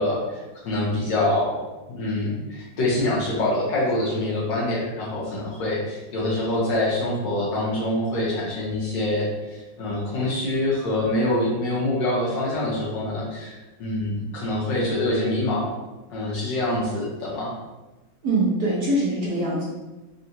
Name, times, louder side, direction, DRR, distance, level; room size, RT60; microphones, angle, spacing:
voice 1, 0.0-15.7 16.1-17.5, left 1 dB, 70° left, -5 dB, 1.4 m, -25 dB
voice 2, 18.2-19.6, right 1 dB, 65° right, -6 dB, 1.0 m, -23 dB
3.7 x 2.3 x 2.7 m, 1.1 s
omnidirectional pair, 2.2 m